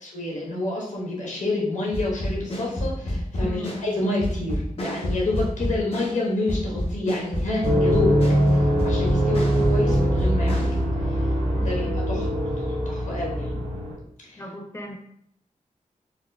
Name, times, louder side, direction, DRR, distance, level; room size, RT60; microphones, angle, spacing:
voice 1, 0.0-8.2 8.5-10.7 11.1-11.2 11.6-12.2 12.9-13.6 14.2-14.4, left 2 dB, 60° left, -4 dB, 1.0 m, -28 dB
sound 1, 1.9-10.8, left 1 dB, 45° left, 0.8 m, -29 dB
voice 2, 3.4-3.8 11.5-12.0 14.4-15.0, left 1 dB, 20° left, 2 dB, 0.5 m, -37 dB
sound 2, 7.6-13.9, equal, 55° right, 0.8 m, -22 dB
3.9 x 2.3 x 2.2 m, 0.73 s
wide cardioid pair, 95°, 14 cm